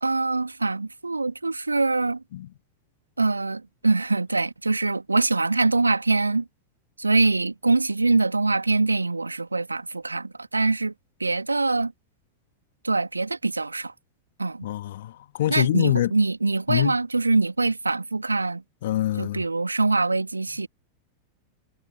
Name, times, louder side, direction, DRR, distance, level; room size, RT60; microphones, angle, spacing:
voice 1, 0.0-2.2 3.2-6.4 7.0-10.9 11.2-11.9 12.8-13.9 14.4-14.7 15.5-18.6 19.2-20.7, right 3 dB, 80° right, 2.5 m, -24 dB
voice 2, 14.6-16.1 16.7-16.9 18.8-19.4, left 13 dB, 55° left, 2.1 m, -25 dB
figure-of-eight pair, 90°, 0 cm